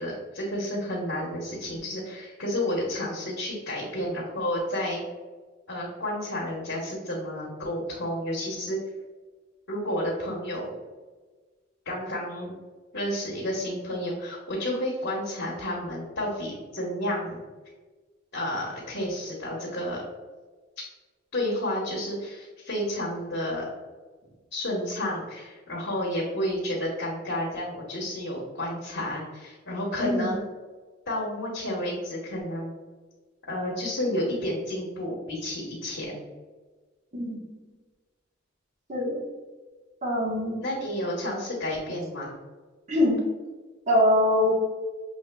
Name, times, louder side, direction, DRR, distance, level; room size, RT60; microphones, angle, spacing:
voice 1, 0.0-5.0 5.7-8.8 9.7-10.7 11.8-12.5 12.9-17.4 18.3-20.0 20.8-20.9 21.3-23.6 24.5-30.4 31.1-32.7 33.5-36.2 40.6-42.3, left 1 dB, 65° left, -6 dB, 1.1 m, -31 dB
voice 2, 40.0-40.6 42.9-43.2 43.9-44.5, left 1 dB, 40° right, -5 dB, 1.1 m, -23 dB
6.3 x 3.3 x 2.2 m, 1.3 s
head